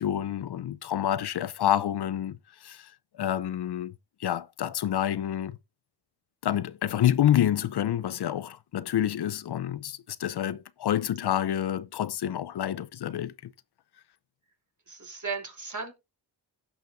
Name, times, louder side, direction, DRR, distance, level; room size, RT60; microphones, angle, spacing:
voice 1, 0.0-3.9 4.2-5.6 6.4-13.5, left 11 dB, 60° left, 0.7 m, -28 dB
voice 2, 14.9-15.9, right 4 dB, 40° right, 3.0 m, -35 dB
16.5 x 5.7 x 2.6 m
cardioid pair, 55°, 46 cm